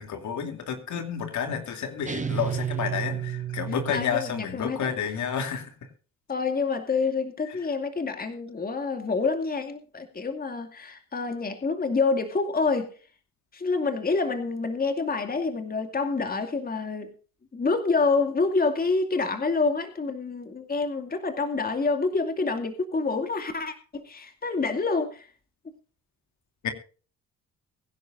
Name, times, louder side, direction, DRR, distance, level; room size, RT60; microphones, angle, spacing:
voice 1, 0.0-5.7 26.6-26.7, left 7 dB, 70° left, 2.9 m, -30 dB
sound 1, 2.1-4.6, right 9 dB, 25° right, 1.7 m, -32 dB
voice 2, 3.9-5.2 6.3-12.9 13.5-17.1 17.5-25.3, left 4 dB, 30° left, 2.4 m, -27 dB
22.5 x 10.5 x 2.6 m
cardioid pair, 90°, 30 cm